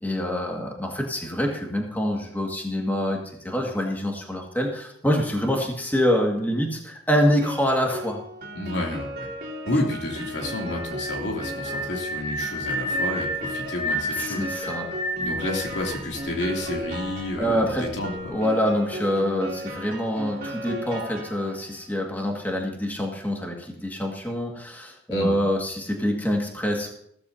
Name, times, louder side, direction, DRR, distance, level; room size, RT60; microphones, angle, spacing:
voice 1, 0.0-3.2 3.4-8.2 14.2-14.9 17.4-17.9 18.3-26.9, equal, 10° left, 0 dB, 1.9 m, -25 dB
Piano, 7.4-21.8, equal, 55° right, 3.0 m, -36 dB
voice 2, 8.5-9.3 9.7-14.7 15.2-18.1 25.1-25.4, left 1 dB, 80° left, 0 dB, 2.8 m, -30 dB
sound 1, 10.1-17.0, equal, 35° right, 5.3 m, -31 dB
15.5 x 13.5 x 2.8 m, 0.71 s
head